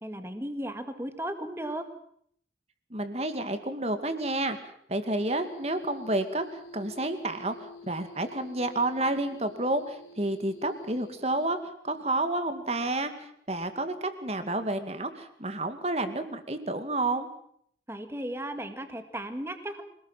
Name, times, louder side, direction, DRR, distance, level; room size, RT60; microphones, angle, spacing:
voice 1, 0.0-1.9 17.9-19.8, right 1 dB, 15° right, 8 dB, 2.0 m, -35 dB
voice 2, 2.9-17.3, right 2 dB, 35° right, 9 dB, 2.3 m, -30 dB
sound 1, 5.2-11.5, left 2 dB, 80° left, 4.4 m, -49 dB
26.0 x 19.0 x 7.5 m, 0.66 s
head